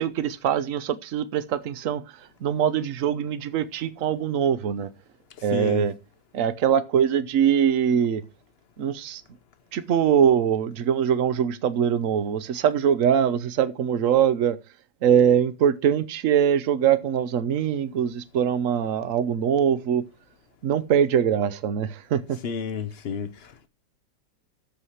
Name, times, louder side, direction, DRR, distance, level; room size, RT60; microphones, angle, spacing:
voice 1, 0.0-4.9 5.4-5.9 6.3-8.2 8.8-9.2 9.7-14.6 15.0-20.1 20.6-22.4, right 8 dB, 55° right, 1.1 m, -23 dB
voice 2, 5.5-5.8 22.4-23.7, left 6 dB, 55° left, 0.7 m, -31 dB
13.5 x 4.8 x 5.7 m
omnidirectional pair, 2.0 m